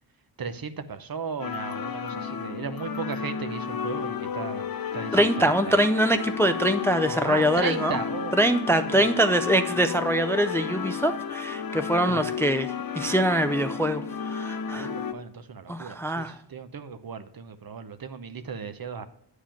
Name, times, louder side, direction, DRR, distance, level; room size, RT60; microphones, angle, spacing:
voice 1, 0.4-5.9 7.1-8.4 8.9-9.0 12.1-12.2 14.8-19.0, right 6 dB, 55° right, 10 dB, 0.7 m, -36 dB
sound 1, 1.4-15.1, left 7 dB, 55° left, 0.6 m, -32 dB
voice 2, 5.1-8.0 8.4-14.9 15.7-16.3, right 1 dB, 5° left, 9 dB, 0.4 m, -24 dB
8.9 x 4.9 x 5.7 m, 0.68 s
wide cardioid pair, 75°, 43 cm